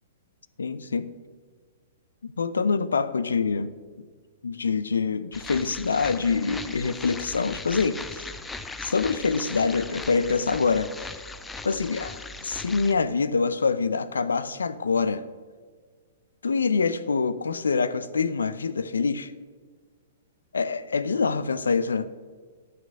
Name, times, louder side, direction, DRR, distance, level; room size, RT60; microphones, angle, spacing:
voice 1, 0.6-1.1 2.2-3.7 4.4-8.3 8.8-11.1 11.6-15.2 16.4-19.3 20.5-22.1, left 5 dB, 80° left, 14 dB, 0.6 m, -25 dB
sound 1, 5.3-12.9, left 3 dB, 10° left, 0.6 m, -38 dB
11.0 x 6.1 x 6.5 m, 1.6 s
hypercardioid pair, 115°, 0 cm